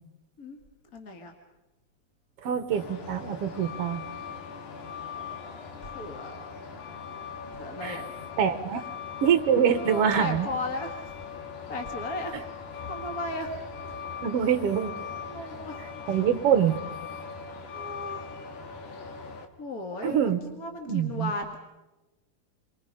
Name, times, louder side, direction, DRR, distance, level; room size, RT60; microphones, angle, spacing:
voice 1, 0.9-1.3 5.1-6.4 7.6-8.1 8.7-8.9 9.6-11.2 11.7-12.4 12.8-13.6 15.2-15.8 17.7-18.4 19.6-21.6, left 2 dB, 35° left, 3 dB, 1.7 m, -36 dB
voice 2, 2.4-4.0 7.8-8.0 8.4-8.8 9.2-10.5 14.2-14.9 16.1-16.8 20.0-20.4 20.9-21.3, right 8 dB, 60° right, 10 dB, 1.8 m, -24 dB
Truck, 2.7-19.5, left 6 dB, 80° left, 3.2 m, -40 dB
29.5 x 23.5 x 5.3 m, 1.1 s
omnidirectional pair, 3.5 m